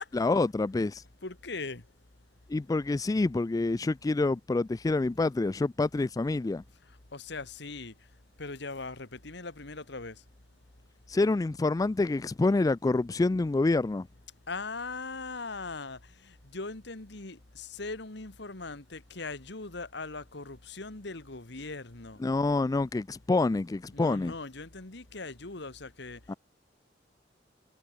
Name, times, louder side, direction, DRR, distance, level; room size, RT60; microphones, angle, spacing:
voice 1, 0.1-1.0 2.5-6.6 11.1-14.1 22.2-24.3 26.3-26.4, left 3 dB, 20° left, 0.3 m, -27 dB
voice 2, 1.2-1.8 7.1-7.9 8.4-10.2 14.5-22.2 23.9-26.2, left 3 dB, 65° left, 2.0 m, -40 dB
head